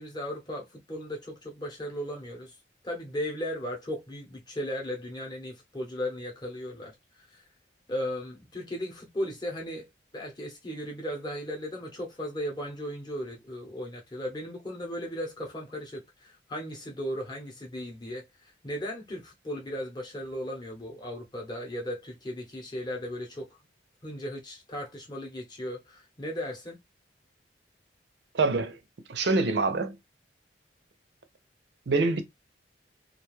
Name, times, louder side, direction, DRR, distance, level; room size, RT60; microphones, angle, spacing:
voice 1, 0.0-2.5 2.8-7.5 7.9-9.9 10.1-23.5 24.0-26.8, equal, 20° left, 0.8 m, -36 dB
voice 2, 28.3-28.8 29.1-30.0 31.9-32.2, right 3 dB, 65° right, 0.5 m, -25 dB
2.4 x 2.2 x 3.1 m
head